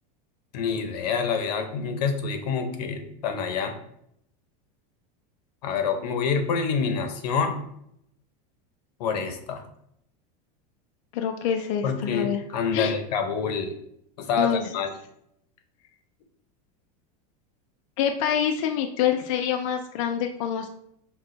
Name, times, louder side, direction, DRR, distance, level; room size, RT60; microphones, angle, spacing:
voice 1, 0.5-3.8 5.6-7.6 9.0-9.6 11.8-13.8 14.2-14.9, left 5 dB, 90° left, 6 dB, 0.8 m, -27 dB
voice 2, 11.1-12.4 12.7-12.9 14.4-14.7 18.0-20.7, left 8 dB, 55° left, 5 dB, 0.4 m, -26 dB
6.0 x 2.2 x 3.8 m, 0.73 s
supercardioid pair, 175°, 20 cm